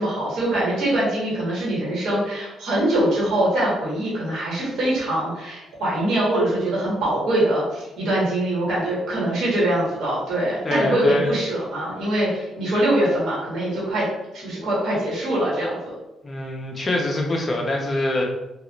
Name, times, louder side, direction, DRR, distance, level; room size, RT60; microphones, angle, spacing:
voice 1, 0.0-14.0 14.3-15.8, right 1 dB, 75° right, -6 dB, 1.4 m, -23 dB
voice 2, 10.6-11.4 16.2-18.2, left 1 dB, 30° left, 0 dB, 0.8 m, -24 dB
3.6 x 2.5 x 3.0 m, 0.96 s
cardioid pair, 90°, 0 cm